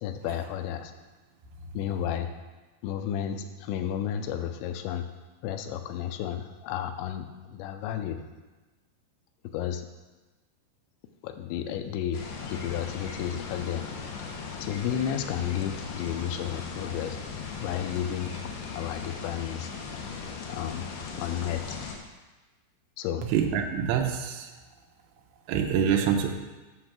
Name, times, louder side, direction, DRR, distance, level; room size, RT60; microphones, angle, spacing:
voice 1, 0.0-0.9 1.7-2.3 2.8-5.1 5.4-8.2 9.5-9.8 11.2-12.2 12.5-13.9 14.6-17.2 17.6-18.4 18.7-19.7 20.5-21.8 23.0-23.3, left 9 dB, 85° left, 8 dB, 2.9 m, -32 dB
sound 1, 12.1-22.0, left 5 dB, 70° left, 2.7 m, -38 dB
voice 2, 23.3-24.5 25.5-26.3, right 8 dB, 85° right, 3 dB, 3.1 m, -25 dB
8.1 x 6.6 x 6.0 m, 1.2 s
omnidirectional pair, 5.1 m